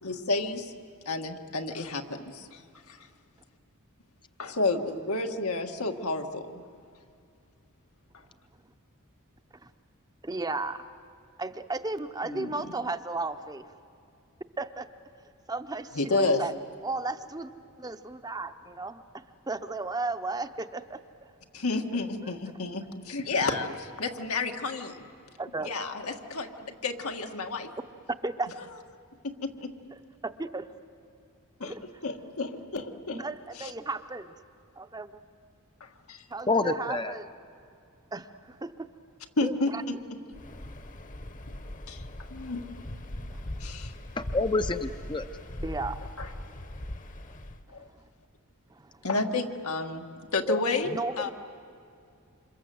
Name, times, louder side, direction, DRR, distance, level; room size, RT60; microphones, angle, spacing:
voice 1, 0.0-0.7 1.1-2.6 2.9-3.1 4.4-6.6 12.2-12.5 15.9-16.4 21.5-25.0 25.6-27.7 29.2-29.7 31.6-31.7 32.0-33.2 33.6-33.7 35.8-36.3 39.4-39.9 41.9-42.0 42.3-42.6 43.6-43.9 46.2-46.3 47.7-47.9 49.0-50.1 50.3-51.3, left 3 dB, 85° left, 4 dB, 1.8 m, -31 dB
voice 2, 10.2-10.9 11.4-13.6 14.6-14.9 15.5-16.5 16.8-17.5 17.8-19.0 19.5-21.0 22.2-22.3 25.4-25.7 28.2-28.5 30.2-30.7 31.6-31.8 33.1-34.3 34.8-35.2 36.3-37.3 38.1-38.9 39.4-39.8 43.3-43.5 45.6-46.0 48.7-48.9 50.9-51.3, right 3 dB, 20° right, 9 dB, 0.7 m, -34 dB
voice 3, 36.5-37.1 44.2-45.2 50.5-50.6, left 3 dB, 20° left, 9 dB, 0.6 m, -27 dB
Waves surf, 40.3-47.6, left 1 dB, 40° left, 1.1 m, -40 dB
28.0 x 26.5 x 7.9 m, 2.4 s
head